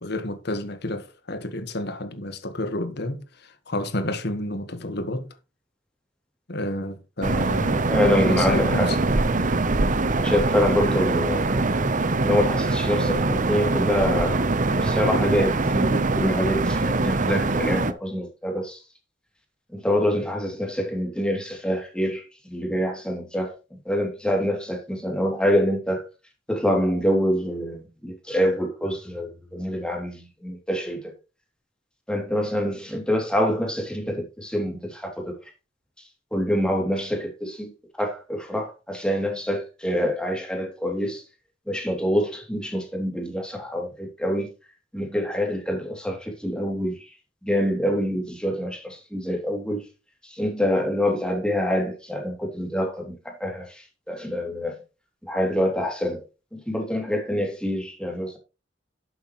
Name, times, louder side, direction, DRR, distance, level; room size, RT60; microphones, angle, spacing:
voice 1, 0.0-5.3 6.5-9.0 10.9-11.0, left 1 dB, 60° left, 1.5 m, -30 dB
sound 1, 7.2-17.9, right 2 dB, 45° right, 0.9 m, -23 dB
voice 2, 7.9-8.9 10.2-11.4 12.2-18.8 19.7-23.5 23.8-26.1 26.5-31.1 32.1-35.3 36.3-37.7 38.0-41.2 41.7-44.5 44.9-47.1 47.4-49.8 50.2-54.8 55.2-56.2 56.5-58.4, equal, 5° left, 2.9 m, -26 dB
11.5 x 8.1 x 3.1 m
head